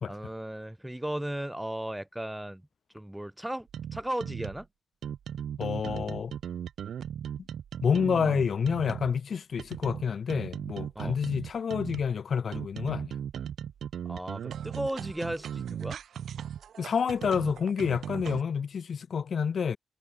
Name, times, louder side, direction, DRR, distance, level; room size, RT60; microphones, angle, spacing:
voice 1, 0.1-2.6 2.9-4.7 10.9-11.2 14.0-16.0, right 1 dB, 5° right, 0.8 m, -35 dB
sound 1, 3.7-4.6 5.0-9.2 9.6-12.1 12.5-18.4, right 9 dB, 85° right, 0.8 m, -37 dB
voice 2, 5.6-6.3 7.8-13.1 16.8-19.8, left 6 dB, 50° left, 0.5 m, -28 dB
wide cardioid pair, 165°, 0 cm